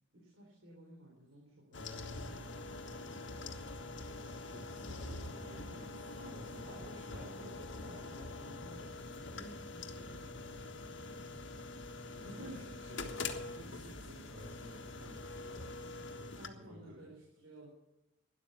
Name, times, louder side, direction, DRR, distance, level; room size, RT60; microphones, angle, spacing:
voice 1, 0.1-2.0 6.2-10.6 11.3-11.6 11.9-12.7 16.4-17.7, right 1 dB, 90° right, -3 dB, 4.3 m, -54 dB
sound 1, 1.7-16.5, left 3 dB, 65° left, 1.6 m, -45 dB
voice 2, 4.5-6.6 6.9-7.9 12.1-15.7 16.1-17.2, equal, 70° right, -5 dB, 4.3 m, -54 dB
12.5 x 11.0 x 8.5 m, 0.91 s
head